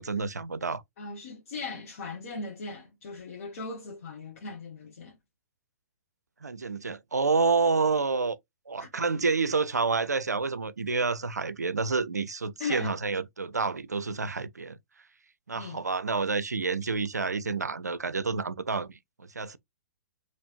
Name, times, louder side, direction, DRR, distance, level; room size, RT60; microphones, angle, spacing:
voice 1, 0.0-0.8 6.4-8.4 8.7-14.8 15.5-19.6, right 4 dB, 90° right, 0.4 m, -29 dB
voice 2, 1.0-5.1 8.8-8.9 12.6-12.9 15.5-15.8, left 4 dB, 60° left, 1.2 m, -38 dB
4.1 x 3.0 x 2.5 m
figure-of-eight pair, 115°, 9 cm